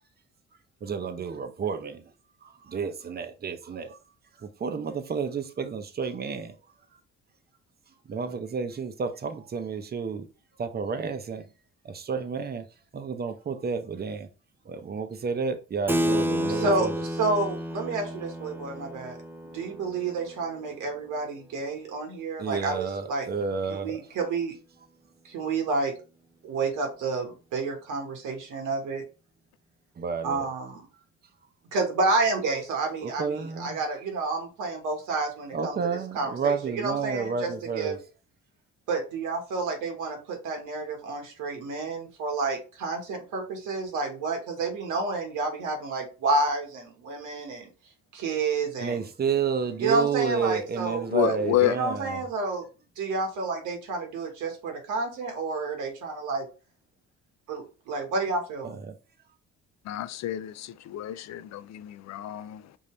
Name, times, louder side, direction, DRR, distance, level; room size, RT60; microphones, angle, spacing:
voice 1, 0.8-2.1 2.4-4.0 4.4-6.6 8.0-10.3 10.6-11.5 11.8-12.7 12.9-14.3 14.6-16.9 22.4-24.1 30.0-30.5 30.9-31.0 33.0-33.8 35.5-38.0 48.8-52.2 58.6-59.0, right 6 dB, 30° right, 0.7 m, -31 dB
Keyboard (musical), 15.9-21.9, equal, 5° right, 0.4 m, -32 dB
voice 2, 16.5-19.2 19.4-23.3 23.7-24.5 25.2-25.9 26.4-29.0 30.2-30.8 31.7-37.5 37.7-38.0 38.9-47.7 48.1-49.0 49.8-51.1 51.6-52.6 53.0-56.5 57.5-58.8, right 3 dB, 85° right, 1.5 m, -30 dB
voice 3, 51.1-51.8 59.8-62.8, left 13 dB, 65° left, 0.5 m, -29 dB
5.4 x 2.7 x 3.2 m
cardioid pair, 90°, 30 cm